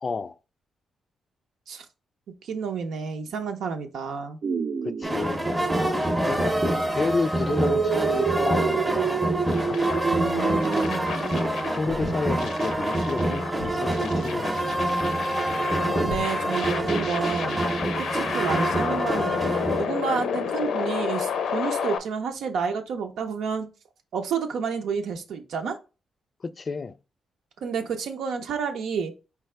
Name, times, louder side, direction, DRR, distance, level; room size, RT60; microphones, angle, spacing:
voice 1, 0.0-0.4 4.8-5.5 6.3-6.6 6.9-9.2 10.4-11.0 11.7-14.7 26.4-26.9, left 4 dB, 30° left, 0.3 m, -31 dB
voice 2, 2.4-4.4 10.0-11.1 15.9-17.6 18.1-19.5 19.8-23.7 24.1-25.8 27.6-29.1, right 6 dB, 85° right, 0.7 m, -30 dB
sound 1, 4.4-5.7 7.5-10.9, right 6 dB, 45° right, 0.4 m, -27 dB
sound 2, 5.0-19.9, right 1 dB, 10° right, 0.7 m, -26 dB
sound 3, 9.5-22.0, left 7 dB, 75° left, 0.6 m, -31 dB
4.7 x 3.3 x 3.3 m
wide cardioid pair, 155°, 0 cm